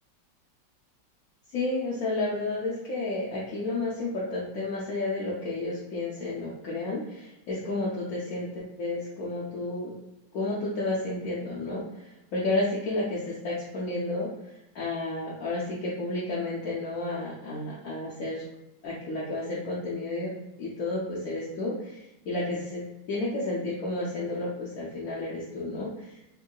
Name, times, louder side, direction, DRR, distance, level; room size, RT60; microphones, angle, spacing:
voice 1, 1.5-9.9 10.3-14.3 14.7-18.5 18.8-20.3 20.6-26.1, left 2 dB, 70° left, -7 dB, 0.8 m, -31 dB
3.5 x 2.7 x 2.2 m, 0.89 s
omnidirectional pair, 2.2 m